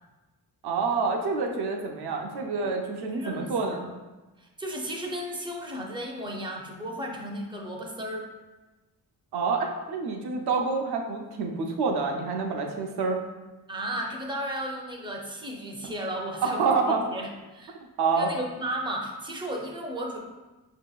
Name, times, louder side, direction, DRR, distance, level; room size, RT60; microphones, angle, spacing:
voice 1, 0.6-3.9 9.3-13.2 15.8-15.9 16.4-17.2 18.0-18.3, right 4 dB, 75° right, 2 dB, 0.6 m, -27 dB
voice 2, 2.6-3.9 4.4-8.2 13.7-17.8 18.2-20.2, equal, 15° right, 0 dB, 0.5 m, -34 dB
5.4 x 2.8 x 2.3 m, 1.2 s
wide cardioid pair, 140°, 39 cm